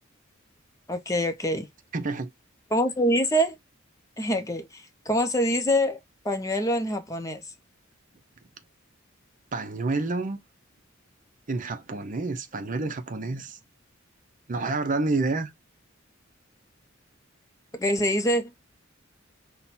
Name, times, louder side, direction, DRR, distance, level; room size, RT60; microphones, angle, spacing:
voice 1, 0.9-1.7 2.7-3.5 4.2-6.0 6.2-7.4 17.7-18.5, equal, 15° left, 0.6 m, -25 dB
voice 2, 1.9-2.3 9.5-10.4 11.5-13.6 14.5-15.5, right 3 dB, 40° right, 0.6 m, -28 dB
5.6 x 2.2 x 4.2 m
head